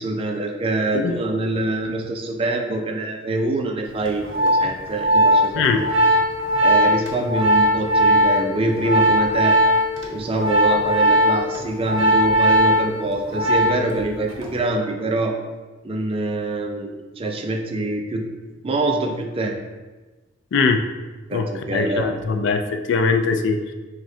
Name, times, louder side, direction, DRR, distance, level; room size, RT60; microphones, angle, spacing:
voice 1, 0.0-5.9 6.6-9.6 10.1-15.3 15.8-16.9 17.2-18.2 18.6-19.5 21.3-22.1, right 2 dB, 30° right, 2 dB, 0.4 m, -25 dB
Organ, 4.0-14.0 14.3-14.6, equal, 70° right, 0.6 m, -19 dB
voice 2, 20.5-20.8 21.3-23.7, left 4 dB, 60° left, 7 dB, 0.3 m, -21 dB
6.0 x 2.2 x 2.6 m, 1.2 s
head